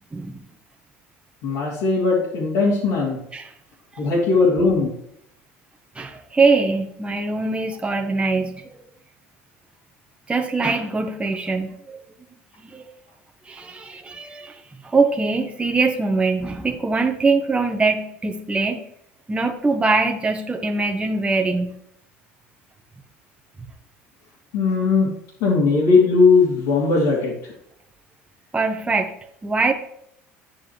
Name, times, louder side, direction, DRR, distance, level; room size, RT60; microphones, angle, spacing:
voice 1, 1.4-3.2 4.0-4.9 24.5-25.1 25.4-27.5, left 4 dB, 75° left, -7 dB, 2.7 m, -18 dB
voice 2, 5.9-8.7 10.3-12.0 12.6-12.8 13.4-18.8 19.3-21.8 28.5-29.1 29.4-29.7, right 3 dB, 15° right, 3 dB, 1.1 m, -22 dB
9.7 x 8.9 x 3.2 m, 0.73 s
hypercardioid pair, 75°, 7 cm